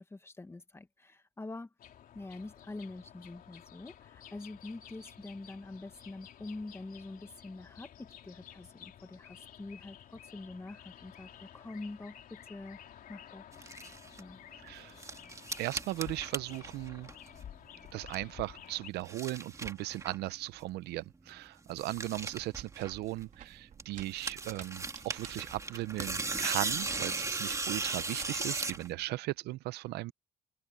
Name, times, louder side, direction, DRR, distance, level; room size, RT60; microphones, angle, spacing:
voice 1, 0.0-1.7 2.1-12.8 13.1-13.4 14.2-14.4, left 2 dB, 15° left, 1.7 m, -45 dB
sound 1, 1.8-18.9, left 10 dB, 55° left, 3.5 m, -52 dB
sound 2, 13.5-14.2 14.7-17.5 17.7-18.4 18.8-20.3 20.6-20.7 21.0-21.1 21.3-21.4 21.6-23.4 23.8-28.9, right 3 dB, 20° right, 2.2 m, -37 dB
voice 2, 14.6-15.0 15.6-17.1 17.9-30.1, right 17 dB, 80° right, 0.7 m, -37 dB
sound 3, 21.7-29.1, right 8 dB, 50° right, 3.9 m, -54 dB
cardioid pair, 110°, 17 cm